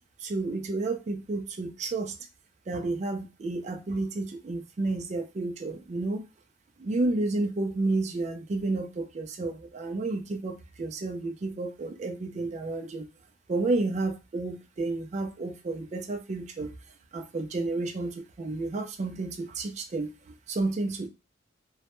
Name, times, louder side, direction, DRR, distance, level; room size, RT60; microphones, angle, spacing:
voice 1, 0.2-2.2 2.7-6.2 6.8-13.1 13.5-16.7 17.1-21.1, right 2 dB, 35° right, 0.3 m, -31 dB
2.1 x 2.1 x 2.9 m
head